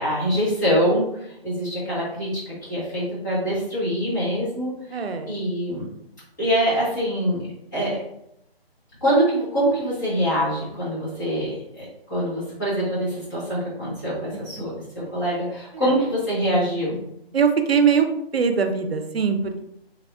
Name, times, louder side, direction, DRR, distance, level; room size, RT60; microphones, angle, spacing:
voice 1, 0.0-4.7 5.3-5.8 6.4-7.4 7.7-8.0 9.0-16.9, equal, 20° left, -9 dB, 1.2 m, -24 dB
voice 2, 4.9-5.4 14.3-14.4 15.8-15.9 16.9-17.0 17.3-18.1 18.3-19.6, right 6 dB, 75° right, 7 dB, 0.5 m, -21 dB
3.4 x 3.3 x 2.4 m, 0.79 s
figure-of-eight pair, 160°, 31 cm